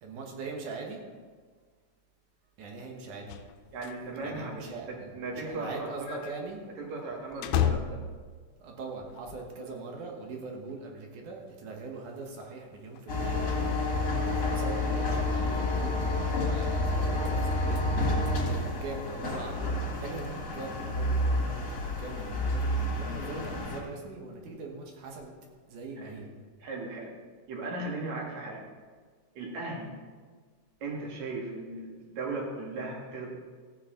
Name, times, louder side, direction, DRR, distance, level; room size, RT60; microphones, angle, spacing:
voice 1, 0.0-1.0 2.6-3.4 4.2-6.6 8.6-13.5 14.2-17.9 18.4-25.3 25.7-26.3, right 3 dB, 85° right, 1 dB, 3.0 m, -41 dB
sound 1, 3.3-9.8 10.0-10.1 10.7-10.8 11.5-11.6 11.8-11.9 12.1-12.5 12.7-13.8 14.5-14.7 15.6-16.0 16.4-18.6, left 8 dB, 80° left, 2.0 m, -37 dB
voice 2, 3.7-4.5 4.9-6.2 6.8-8.0 26.0-26.2 26.6-27.1 27.5-28.6 29.3-29.9 30.8-33.3, right 2 dB, 70° right, -1 dB, 3.2 m, -37 dB
sound 2, 13.1-23.8, left 1 dB, 40° left, 2.1 m, -29 dB
15.0 x 8.9 x 3.8 m, 1.5 s
omnidirectional pair, 3.4 m